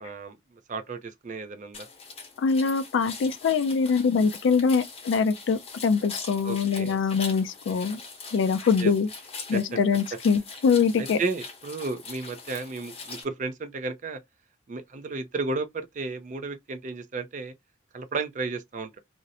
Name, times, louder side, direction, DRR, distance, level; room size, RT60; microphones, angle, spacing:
voice 1, 0.0-1.9 6.4-7.0 8.8-8.9 9.5-9.6 11.0-14.2 14.7-17.5 17.9-19.0, right 3 dB, 40° right, 0.4 m, -33 dB
sound 1, 1.7-13.2, left 4 dB, 30° left, 0.9 m, -42 dB
voice 2, 2.4-8.0 8.3-9.1 9.5-11.2, left 5 dB, 80° left, 0.3 m, -23 dB
2.5 x 2.0 x 2.7 m
head